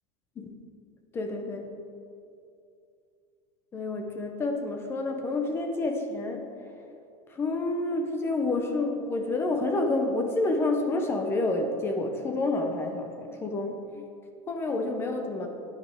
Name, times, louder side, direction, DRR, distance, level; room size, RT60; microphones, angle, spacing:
voice 1, 1.1-1.8 3.7-6.5 7.3-14.0 14.5-15.5, left 2 dB, 15° left, 5 dB, 0.5 m, -29 dB
9.6 x 8.6 x 3.4 m, 2.5 s
supercardioid pair, 175°, 17 cm